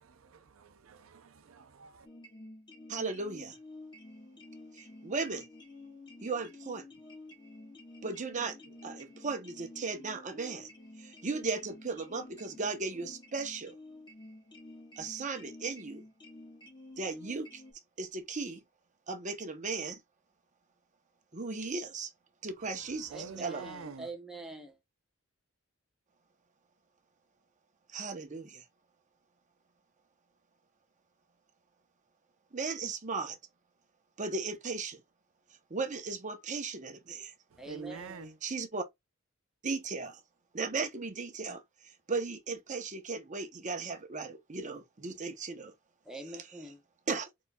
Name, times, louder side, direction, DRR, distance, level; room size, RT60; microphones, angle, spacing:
voice 1, 0.0-2.1 23.1-24.1 37.7-38.3, right 4 dB, 75° right, 0.6 m, -46 dB
sound 1, 2.0-17.7, left 2 dB, 20° left, 1.5 m, -51 dB
voice 2, 2.9-3.6 4.7-5.5 6.2-6.8 8.0-10.7 11.0-13.8 15.0-16.0 17.0-17.6 18.0-18.6 19.1-20.0 21.3-22.1 22.4-23.6 27.9-28.6 32.5-33.4 34.2-35.0 35.7-37.3 38.4-38.8 39.6-40.2 40.5-45.7 47.1-47.3, right 4 dB, 35° right, 0.9 m, -36 dB
voice 3, 23.1-24.8 37.6-38.3 46.0-46.8, right 2 dB, ahead, 0.7 m, -45 dB
4.3 x 4.0 x 2.3 m
head